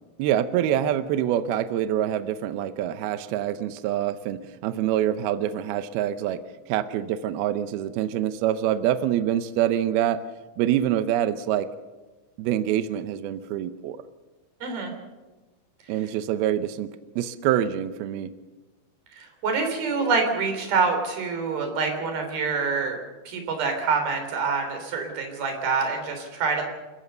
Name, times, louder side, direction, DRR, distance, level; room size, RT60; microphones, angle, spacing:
voice 1, 0.2-10.2 10.6-11.7 12.4-14.0 15.9-18.3, right 11 dB, 80° right, 11 dB, 2.2 m, -25 dB
voice 2, 14.6-14.9 19.2-23.0 23.3-26.6, right 4 dB, 55° right, 5 dB, 5.1 m, -26 dB
28.0 x 15.0 x 6.8 m, 1.2 s
omnidirectional pair, 5.3 m